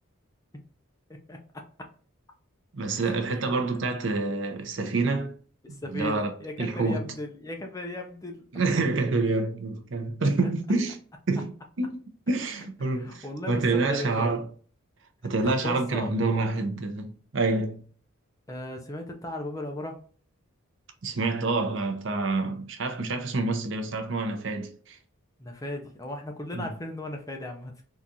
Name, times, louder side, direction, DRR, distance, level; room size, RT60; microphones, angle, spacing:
voice 1, 1.1-1.6 2.9-3.5 5.8-8.5 12.5-14.4 15.4-16.1 18.5-20.0 25.4-27.8, left 1 dB, 15° left, 0.4 m, -37 dB
voice 2, 2.7-5.4 5.9-7.1 8.5-11.0 11.3-11.5 11.8-14.4 15.2-17.8 21.0-25.0 26.5-26.7, right 3 dB, 60° right, 0.6 m, -27 dB
3.8 x 2.4 x 2.7 m
head